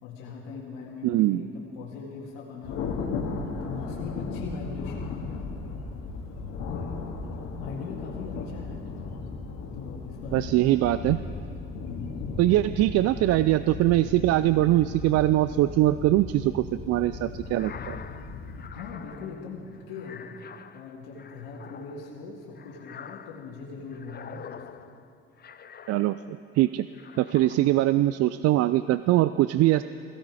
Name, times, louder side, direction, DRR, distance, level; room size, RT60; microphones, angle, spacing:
voice 1, 0.0-3.0 3.6-5.8 7.6-8.8 9.7-10.9 11.8-12.3 18.7-20.3 20.7-24.6 27.5-27.7, left 4 dB, 80° left, -3 dB, 2.0 m, -40 dB
voice 2, 1.0-1.4 10.3-11.2 12.4-18.0 25.9-26.9 27.2-29.8, right 15 dB, 55° right, 14 dB, 0.4 m, -22 dB
Thunder, 2.6-18.7, left 4 dB, 65° left, 2.1 m, -36 dB
sound 1, 17.4-26.5 26.9-28.0, left 7 dB, 35° left, 0.7 m, -46 dB
16.5 x 15.5 x 4.9 m, 2.5 s
supercardioid pair, 75°, 29 cm